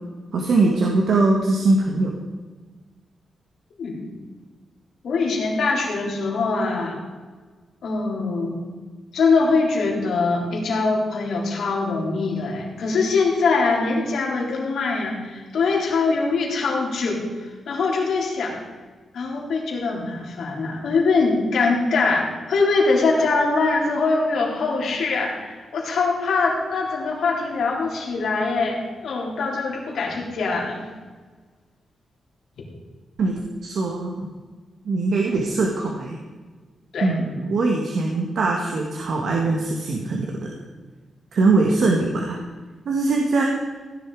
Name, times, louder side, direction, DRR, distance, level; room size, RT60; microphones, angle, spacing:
voice 1, 0.3-2.2 33.2-34.3 34.8-36.2 37.0-40.5 41.3-42.4 42.9-43.4, right 3 dB, 60° right, 0 dB, 1.9 m, -21 dB
voice 2, 3.8-4.1 5.0-7.0 7.8-8.6 9.1-18.5 19.1-30.8 36.9-37.1, left 3 dB, 70° left, -1 dB, 3.9 m, -23 dB
16.5 x 10.5 x 4.9 m, 1.4 s
wide cardioid pair, 150°, 0 cm